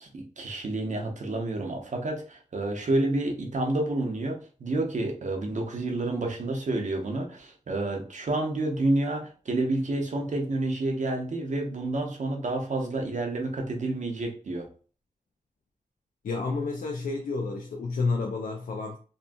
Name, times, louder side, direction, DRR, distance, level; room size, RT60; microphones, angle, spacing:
voice 1, 0.0-14.7, right 2 dB, 60° right, 0.7 m, -29 dB
voice 2, 16.2-19.0, left 3 dB, 80° left, 0.4 m, -30 dB
2.8 x 2.3 x 2.6 m
wide cardioid pair, 70°, 14 cm